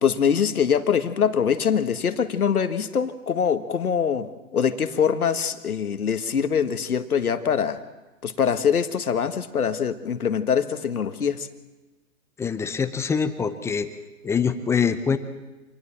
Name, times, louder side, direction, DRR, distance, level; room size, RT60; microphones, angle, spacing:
voice 1, 0.0-7.8 8.2-11.5, left 7 dB, 80° left, 10 dB, 1.6 m, -23 dB
voice 2, 12.4-13.9 14.2-15.2, left 6 dB, 5° left, 11 dB, 0.7 m, -24 dB
26.5 x 19.5 x 7.4 m, 1.2 s
hypercardioid pair, 125°, 43 cm